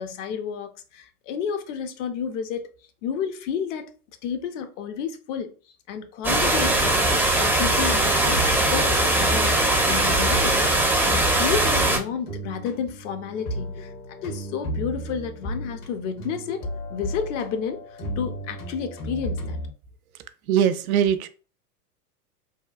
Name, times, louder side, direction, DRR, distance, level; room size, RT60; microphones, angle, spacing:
voice 1, 0.0-2.7 3.0-3.9 4.2-5.5 5.9-13.9 14.2-19.6, left 7 dB, 50° left, 0.7 m, -31 dB
sound 1, 6.2-12.0, right 1 dB, 5° right, 0.5 m, -21 dB
sound 2, 8.0-19.7, equal, 70° left, 1.3 m, -34 dB
voice 2, 20.5-21.3, right 9 dB, 65° right, 0.5 m, -21 dB
2.9 x 2.2 x 2.4 m
hypercardioid pair, 100°, 46 cm